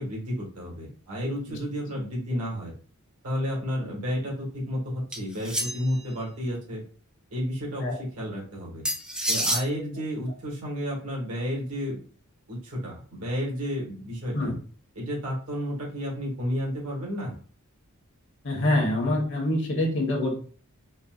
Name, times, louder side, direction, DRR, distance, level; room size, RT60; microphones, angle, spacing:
voice 1, 0.0-2.7 3.2-6.8 7.3-8.8 9.3-12.0 12.5-14.5 14.9-17.4, equal, 75° right, -3 dB, 1.5 m, -31 dB
sound 1, 5.1-6.0 8.8-9.7, right 1 dB, 5° right, 0.3 m, -28 dB
voice 2, 18.4-20.3, left 1 dB, 55° left, 0 dB, 1.0 m, -25 dB
4.0 x 2.2 x 2.4 m, 0.42 s
head